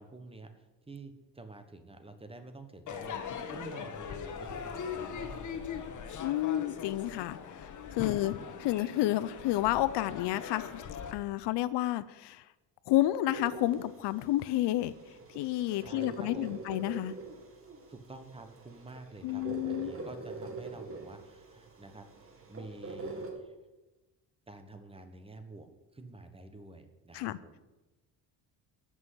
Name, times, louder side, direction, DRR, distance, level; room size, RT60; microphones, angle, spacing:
voice 1, 0.0-3.2 3.5-5.9 8.2-8.3 15.8-16.6 17.9-22.1 22.5-23.5 24.5-25.7 25.9-27.6, right 2 dB, 15° right, 7 dB, 1.2 m, -49 dB
Crowd / Fireworks, 2.9-11.1, left 7 dB, 45° left, 1.4 m, -40 dB
voice 2, 6.2-7.4 7.9-8.3 8.6-10.8 11.1-12.4 12.9-14.9 15.3-17.1 19.2-19.9 27.1-27.4, left 15 dB, 75° left, 16 dB, 0.7 m, -30 dB
sound 1, 13.3-23.3, right 3 dB, 30° right, 2.2 m, -45 dB
13.0 x 6.3 x 8.1 m, 1.1 s
cardioid pair, 135°, 42 cm